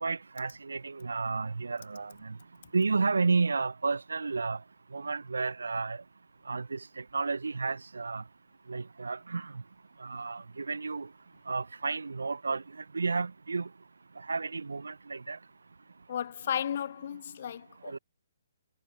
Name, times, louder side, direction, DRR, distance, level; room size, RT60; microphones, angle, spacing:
voice 1, 0.0-2.3 2.7-4.6 4.9-6.0 6.5-6.8 7.1-8.2 8.7-9.5 10.0-11.1 11.5-12.6 12.9-13.7 14.3-15.4 17.9-18.0, right 4 dB, 70° right, 0.5 m, -31 dB
voice 2, 16.1-18.0, left 9 dB, 50° left, 0.8 m, -34 dB
figure-of-eight pair, 135°, 0 cm